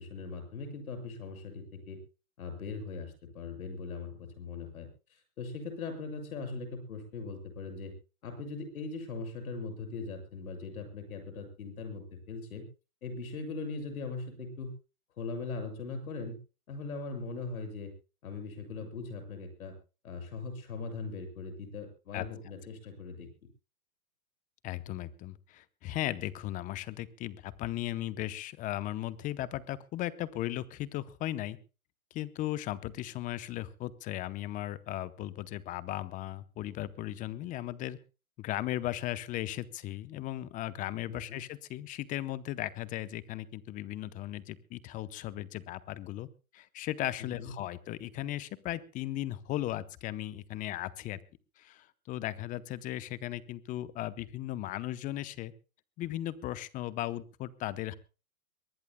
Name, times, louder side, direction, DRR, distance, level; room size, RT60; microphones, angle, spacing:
voice 1, 0.0-2.0 2.4-7.9 8.2-12.6 13.0-14.7 15.2-16.4 16.7-17.9 18.2-19.7 20.0-23.3 41.1-41.4 47.4-47.5, left 4 dB, 75° left, 7 dB, 7.2 m, -40 dB
voice 2, 24.6-31.6 32.1-38.0 38.4-46.3 46.5-51.2 51.6-55.5 56.0-57.9, left 14 dB, 20° left, 16 dB, 0.7 m, -37 dB
23.0 x 19.0 x 2.2 m, 0.33 s
hypercardioid pair, 140°, 43 cm